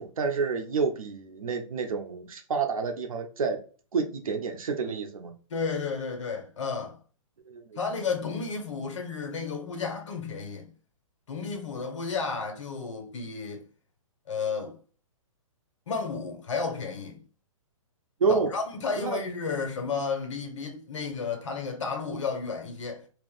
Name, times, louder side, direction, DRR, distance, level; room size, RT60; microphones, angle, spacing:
voice 1, 0.0-3.6 3.9-5.3 7.5-8.1 18.2-18.5 19.0-19.2, right 5 dB, 90° right, 0.9 m, -29 dB
voice 2, 5.5-7.0 7.7-10.7 11.3-13.6 14.3-14.7 15.9-17.2 18.3-23.0, left 5 dB, 60° left, 1.3 m, -32 dB
2.9 x 2.9 x 4.0 m
hypercardioid pair, 165°, 18 cm